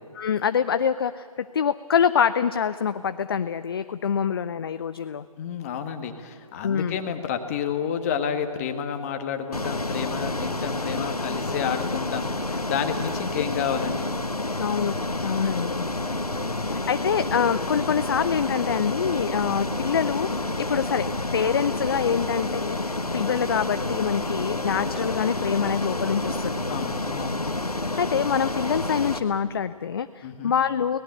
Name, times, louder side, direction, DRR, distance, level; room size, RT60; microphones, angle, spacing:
voice 1, 0.1-5.3 6.6-7.0 14.6-14.9 15.2-15.9 16.7-26.6 28.0-31.0, left 7 dB, 40° left, 12 dB, 0.5 m, -25 dB
voice 2, 5.4-14.1 16.3-16.7 26.7-27.4 30.2-30.5, left 8 dB, 25° left, 6 dB, 1.5 m, -30 dB
Ocean, 9.5-29.2, left 2 dB, 85° left, 1.4 m, -29 dB
24.5 x 18.5 x 8.1 m, 2.3 s
figure-of-eight pair, 145°, 19 cm